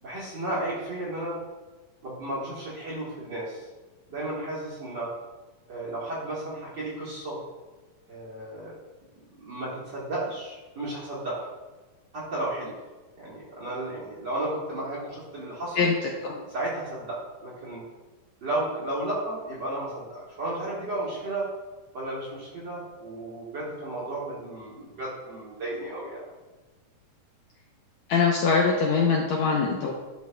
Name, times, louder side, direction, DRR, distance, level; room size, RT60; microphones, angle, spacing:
voice 1, 0.0-1.4 2.0-3.6 4.1-5.1 5.7-7.4 8.1-8.7 9.4-11.5 12.1-12.7 13.1-15.9 16.5-17.8 18.4-21.5 21.9-26.2, right 1 dB, 45° right, -8 dB, 1.7 m, -33 dB
voice 2, 28.1-29.9, left 5 dB, 75° left, -1 dB, 1.6 m, -23 dB
11.5 x 5.3 x 2.3 m, 1.2 s
omnidirectional pair, 3.8 m